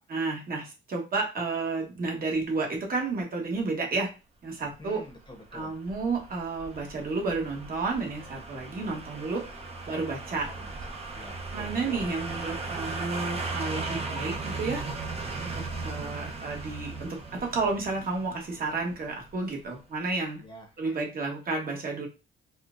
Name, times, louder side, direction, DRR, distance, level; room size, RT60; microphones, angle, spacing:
voice 1, 0.1-4.1 4.4-5.0 5.5-9.5 9.9-10.5 11.5-14.9 15.4-20.4 20.8-22.1, right 3 dB, 45° right, 0 dB, 1.3 m, -31 dB
voice 2, 4.6-5.8 10.4-10.7 11.1-12.0 15.8-16.2 20.4-21.0, left 1 dB, 25° left, 2 dB, 1.0 m, -48 dB
sound 1, 4.8-19.7 20.0-20.1, right 3 dB, 30° right, 0.7 m, -37 dB
4.2 x 2.3 x 2.5 m, 0.29 s
cardioid pair, 90°, 20 cm